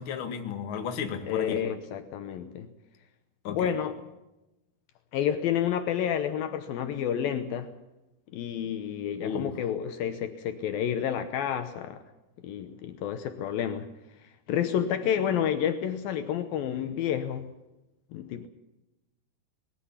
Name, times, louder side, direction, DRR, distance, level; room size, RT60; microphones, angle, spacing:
voice 1, 0.0-1.6 3.4-3.7 9.2-9.5, left 6 dB, 40° left, 2.0 m, -34 dB
voice 2, 1.3-2.7 3.5-4.0 5.1-7.7 8.3-12.0 12.4-13.9 14.2-17.5 18.1-18.5, left 9 dB, 75° left, 2.5 m, -30 dB
21.0 x 14.5 x 9.9 m
omnidirectional pair, 4.7 m